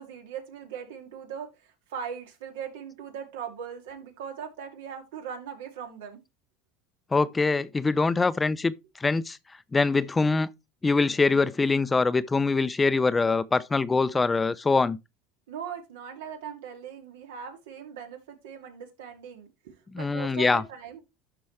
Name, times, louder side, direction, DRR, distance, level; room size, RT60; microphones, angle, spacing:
voice 1, 0.0-6.2 15.5-21.0, right 7 dB, 85° right, 2.5 m, -40 dB
voice 2, 7.1-8.7 9.0-9.4 9.7-10.5 10.8-15.0 19.9-20.6, left 3 dB, 15° left, 0.5 m, -23 dB
11.5 x 4.6 x 3.2 m
supercardioid pair, 105°, 0 cm